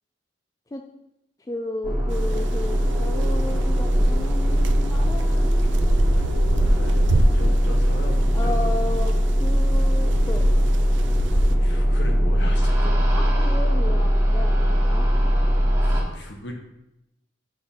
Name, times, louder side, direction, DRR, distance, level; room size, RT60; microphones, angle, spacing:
voice 1, 1.5-6.2 8.3-9.1 9.4-10.5 13.1-15.1, left 2 dB, 15° left, 3 dB, 0.3 m, -34 dB
sound 1, 1.8-16.0, equal, 15° right, 1.1 m, -21 dB
sound 2, 2.1-11.6, right 1 dB, 70° right, 0.5 m, -26 dB
voice 2, 6.0-8.7 11.6-13.1 15.7-16.5, left 1 dB, 65° left, 2 dB, 1.1 m, -37 dB
6.3 x 3.6 x 5.8 m, 0.88 s
head